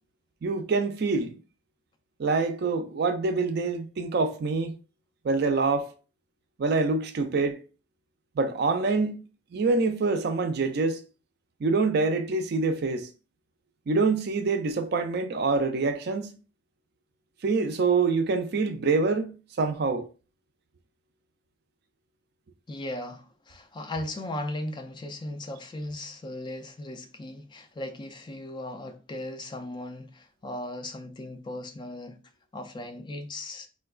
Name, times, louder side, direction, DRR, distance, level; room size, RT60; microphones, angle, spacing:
voice 1, 0.4-1.4 2.2-4.7 5.2-5.9 6.6-7.6 8.4-9.2 9.5-11.0 11.6-13.1 13.9-16.3 17.4-20.1, right 3 dB, 60° right, 0.4 m, -25 dB
voice 2, 22.7-32.2 32.5-33.7, left 1 dB, 25° left, 0.4 m, -37 dB
4.3 x 2.2 x 2.3 m
head